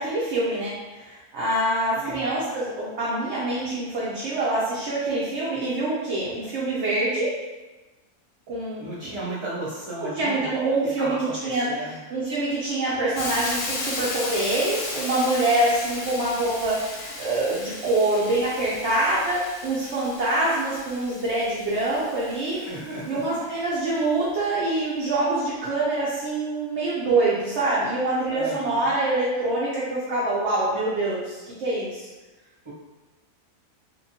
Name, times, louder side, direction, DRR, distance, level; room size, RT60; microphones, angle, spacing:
voice 1, 0.0-7.3 8.5-9.1 10.2-22.6 23.1-32.1, right 2 dB, 60° right, -7 dB, 0.8 m, -25 dB
voice 2, 1.9-2.4 8.8-10.5 10.8-12.0 22.5-23.6 28.3-28.9 32.6-32.7, right 2 dB, 40° right, -8 dB, 0.4 m, -35 dB
Hiss, 13.2-23.1, left 2 dB, 90° left, 1.1 m, -35 dB
2.9 x 2.5 x 2.8 m, 1.1 s
omnidirectional pair, 1.6 m